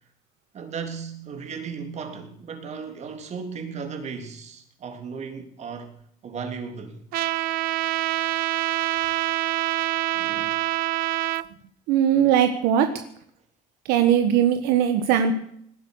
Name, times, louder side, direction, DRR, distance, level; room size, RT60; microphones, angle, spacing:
voice 1, 0.5-6.0 6.2-7.0 10.1-10.6, right 5 dB, 45° right, 3.5 m, -36 dB
Trumpet, 7.1-11.4, right 17 dB, 70° right, 0.6 m, -25 dB
voice 2, 11.9-12.9 13.9-15.3, right 9 dB, 85° right, 1.5 m, -19 dB
19.0 x 11.0 x 6.5 m
cardioid pair, 115°, 16 cm